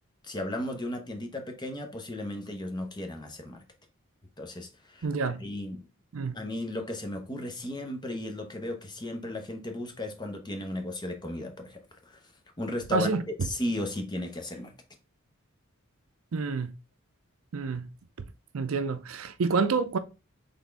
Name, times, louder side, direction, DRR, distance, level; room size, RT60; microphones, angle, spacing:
voice 1, 0.2-3.6 4.4-5.1 5.4-5.8 6.3-11.8 12.1-12.2 12.6-13.1 13.4-14.7, left 1 dB, 20° left, 0.8 m, -35 dB
voice 2, 5.0-5.4 6.1-6.4 12.9-13.3 16.3-16.7 17.5-17.9 18.5-20.0, right 4 dB, 70° right, 0.5 m, -28 dB
4.1 x 3.4 x 3.4 m
head